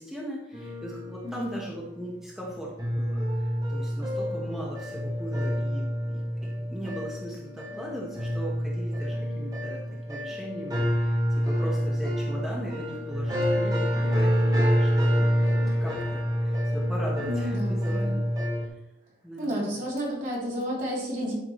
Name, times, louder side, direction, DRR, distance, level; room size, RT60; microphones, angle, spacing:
voice 1, 0.0-15.1 15.8-18.3 19.2-19.8, right 1 dB, 5° right, -5 dB, 1.4 m, -39 dB
sound 1, 0.5-1.8 2.4-2.5 2.8-18.7, equal, 20° right, 1.4 m, -27 dB
voice 2, 1.2-1.6 17.2-18.2 19.4-21.3, equal, 50° right, -5 dB, 3.6 m, -31 dB
11.5 x 6.0 x 3.2 m, 0.83 s
head